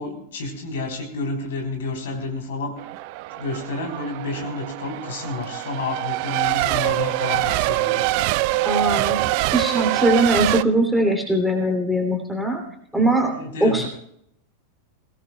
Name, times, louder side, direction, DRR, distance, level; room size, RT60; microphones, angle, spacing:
voice 1, 0.0-2.8 3.4-8.1 13.3-13.9, left 3 dB, 60° left, 2 dB, 3.6 m, -30 dB
Race car auto racing / Accelerating revving vroom / Mechanisms, 2.8-10.6, right 18 dB, 45° right, 0.4 m, -24 dB
voice 2, 8.6-12.6 12.9-13.3 13.6-13.9, right 1 dB, ahead, 1 dB, 2.8 m, -21 dB
22.0 x 17.5 x 2.3 m, 0.72 s
figure-of-eight pair, 90°, 0 cm